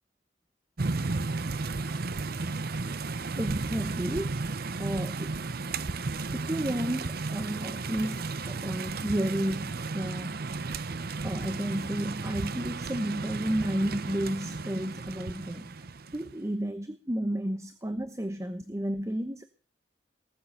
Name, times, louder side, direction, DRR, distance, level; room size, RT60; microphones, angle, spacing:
sound 1, 0.8-16.3, right 3 dB, 55° right, 0.8 m, -34 dB
voice 1, 3.4-4.4 4.8-5.4 5.8-5.9 6.3-10.4 11.2-15.7 16.1-19.4, right 1 dB, 15° right, 10 dB, 1.1 m, -32 dB
19.5 x 8.7 x 6.5 m, 0.42 s
head